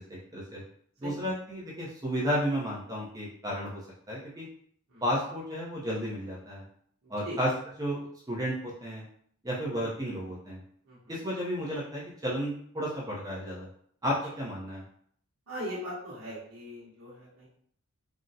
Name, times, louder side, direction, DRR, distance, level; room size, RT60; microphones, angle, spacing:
voice 1, 1.0-4.5 5.0-6.6 7.1-7.5 7.8-8.0 8.3-9.0 9.4-10.6 11.1-13.7 14.0-14.8, equal, 15° right, -5 dB, 0.5 m, -32 dB
voice 2, 7.0-7.4 10.8-11.1 15.5-17.5, equal, 70° right, -7 dB, 0.9 m, -40 dB
3.7 x 2.0 x 2.6 m, 0.62 s
head